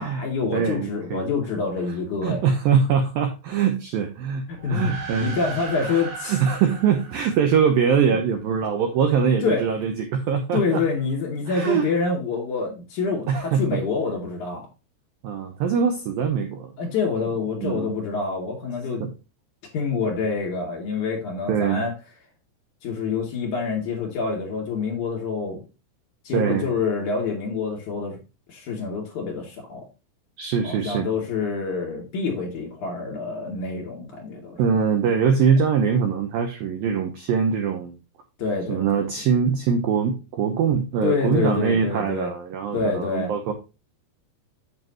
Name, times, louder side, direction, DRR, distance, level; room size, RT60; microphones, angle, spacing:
voice 1, 0.0-2.5 4.5-4.9 5.2-6.4 9.4-9.6 10.5-14.6 16.8-19.0 19.7-22.0 22.8-25.6 26.2-28.2 28.5-29.8 30.6-34.8 38.4-39.0 41.0-42.3 42.7-43.3, left 4 dB, 45° left, 0 dB, 3.4 m, -27 dB
voice 2, 0.5-1.2 2.2-4.4 4.7-5.5 5.8-6.0 6.3-10.8 11.5-11.9 13.3-13.8 15.2-16.7 17.6-18.0 19.0-19.1 21.5-21.8 26.3-26.7 30.4-31.1 34.6-37.9 38.7-43.5, right 6 dB, 80° right, 6 dB, 2.1 m, -23 dB
sound 1, 4.5-8.2, right 4 dB, 65° right, 5.7 m, -37 dB
8.2 x 7.9 x 3.0 m, 0.28 s
omnidirectional pair, 5.5 m